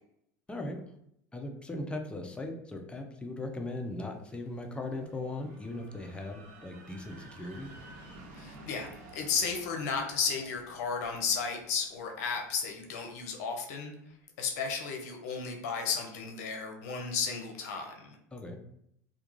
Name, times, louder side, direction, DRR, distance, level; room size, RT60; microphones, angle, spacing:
voice 1, 1.3-7.7 18.3-18.6, left 2 dB, 10° left, 3 dB, 0.5 m, -38 dB
sound 1, 3.7-13.5, right 2 dB, 65° right, 0.7 m, -53 dB
voice 2, 8.4-13.9 14.4-18.1, left 5 dB, 70° left, 3 dB, 0.6 m, -34 dB
2.3 x 2.2 x 3.0 m, 0.74 s
hypercardioid pair, 85°, 9 cm